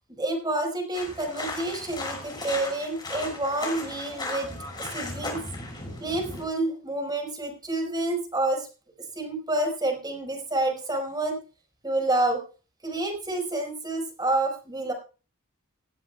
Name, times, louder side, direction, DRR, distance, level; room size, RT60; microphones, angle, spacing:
voice 1, 0.1-4.5 4.8-5.4 6.0-8.7 9.1-11.4 11.8-12.4 12.8-14.9, right 2 dB, 20° right, 3 dB, 4.7 m, -28 dB
sound 1, 0.9-6.4, left 2 dB, 20° left, 5.7 m, -36 dB
18.5 x 15.0 x 2.3 m, 0.34 s
head